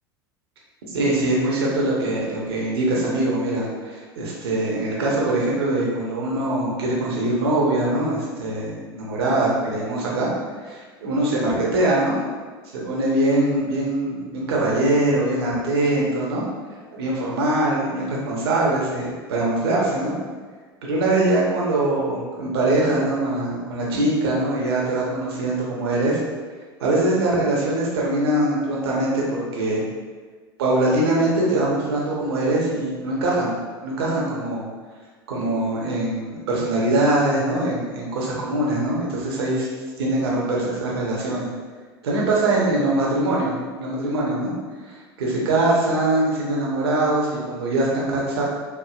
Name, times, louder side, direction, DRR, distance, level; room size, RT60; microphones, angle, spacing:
voice 1, 0.9-10.3 10.6-12.2 12.7-16.4 16.9-20.1 20.8-26.2 26.8-29.8 30.6-33.5 33.8-34.7 35.3-39.7 40.0-41.5 42.0-44.5 44.8-48.4, right 2 dB, 75° right, -4 dB, 1.1 m, -22 dB
4.7 x 2.5 x 2.4 m, 1.5 s
hypercardioid pair, 85°, 13 cm